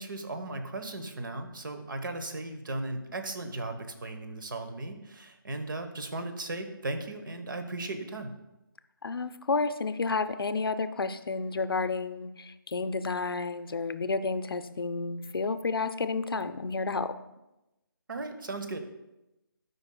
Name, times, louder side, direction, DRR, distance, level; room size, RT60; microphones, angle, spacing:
voice 1, 0.0-8.3 18.1-18.8, right 2 dB, 60° right, 7 dB, 1.0 m, -36 dB
voice 2, 9.0-17.1, left 4 dB, 85° left, 11 dB, 0.6 m, -31 dB
12.0 x 5.3 x 2.3 m, 0.96 s
figure-of-eight pair, 165°, 12 cm